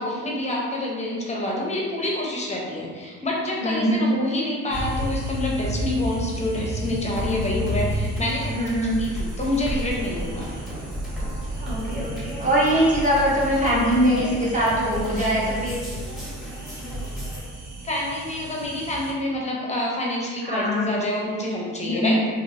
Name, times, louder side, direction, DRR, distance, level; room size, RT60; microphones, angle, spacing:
voice 1, 0.0-8.7 9.0-10.5 17.8-22.2, left 1 dB, 20° left, -3 dB, 0.7 m, -27 dB
voice 2, 3.6-4.2 8.5-9.0 11.6-15.8 20.4-20.9 21.8-22.3, equal, 25° right, -8 dB, 1.2 m, -22 dB
sound 1, 4.7-19.1, equal, 70° right, 0.7 m, -34 dB
sound 2, 7.1-17.4, right 1 dB, ahead, 1.1 m, -33 dB
2.9 x 2.8 x 2.6 m, 1.5 s
cardioid pair, 90°, 30 cm